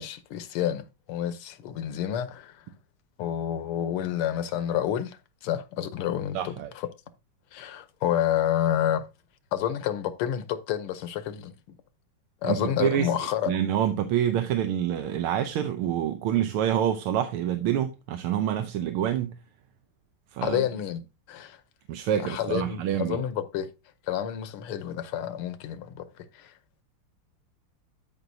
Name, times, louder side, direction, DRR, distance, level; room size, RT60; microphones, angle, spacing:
voice 1, 0.0-2.6 3.2-6.9 7.5-9.1 9.5-11.5 12.4-13.5 20.4-21.0 21.3-21.6 22.2-23.7 24.1-26.5, left 10 dB, 85° left, 1.8 m, -29 dB
voice 2, 6.3-6.7 12.4-13.1 13.5-19.3 20.3-20.6 21.9-23.2, right 10 dB, 90° right, 1.6 m, -27 dB
12.5 x 5.4 x 2.7 m
omnidirectional pair, 2.4 m